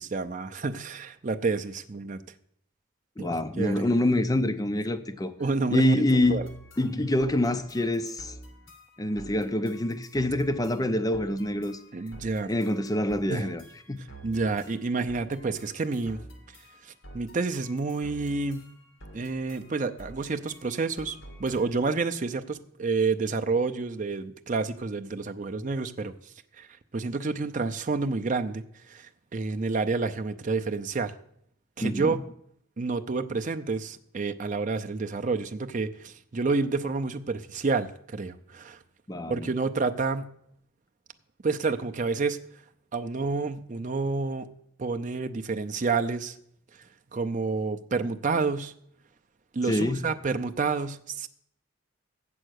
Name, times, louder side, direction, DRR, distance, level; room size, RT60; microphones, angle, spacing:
voice 1, 0.0-2.2 3.2-3.8 5.4-6.0 6.3-6.5 7.0-7.1 11.9-12.5 13.3-13.5 14.2-16.2 16.8-18.6 19.1-26.1 26.6-26.7 26.9-31.1 31.8-32.2 32.8-38.8 39.3-40.3 41.4-42.4 42.9-44.5 44.8-46.4 47.1-48.7 49.5-51.3, right 4 dB, 35° right, 0.5 m, -29 dB
voice 2, 3.2-5.3 5.7-6.4 6.8-8.3 9.0-11.8 12.5-13.6 13.9-14.0 31.8-32.2 39.1-39.5 49.7-50.0, left 1 dB, 15° left, 0.5 m, -26 dB
sound 1, 6.2-22.0, right 1 dB, 60° left, 1.7 m, -49 dB
7.7 x 7.5 x 6.4 m
head